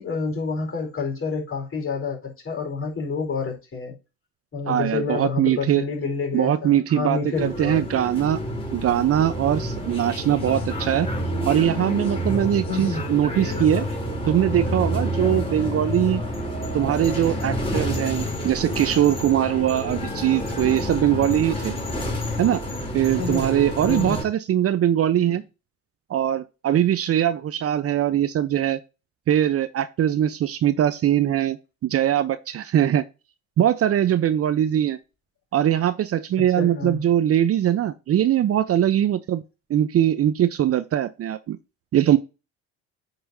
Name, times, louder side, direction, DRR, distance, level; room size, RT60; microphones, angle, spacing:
voice 1, 0.0-4.0 4.5-7.8 12.7-13.0 23.2-23.5 23.9-24.2 25.3-25.4 36.6-37.0, left 4 dB, 40° left, 4.4 m, -28 dB
voice 2, 4.7-5.8 6.3-8.4 8.7-11.1 11.5-13.9 14.3-16.2 16.7-21.7 22.4-22.6 22.9-25.4 26.1-28.8 29.3-31.6 31.8-33.0 33.6-35.0 35.5-39.4 39.7-41.6 41.9-42.2, right 11 dB, 45° right, 0.8 m, -21 dB
sound 1, 7.3-24.2, equal, 15° left, 3.7 m, -28 dB
8.9 x 5.5 x 2.7 m
hypercardioid pair, 60°, 33 cm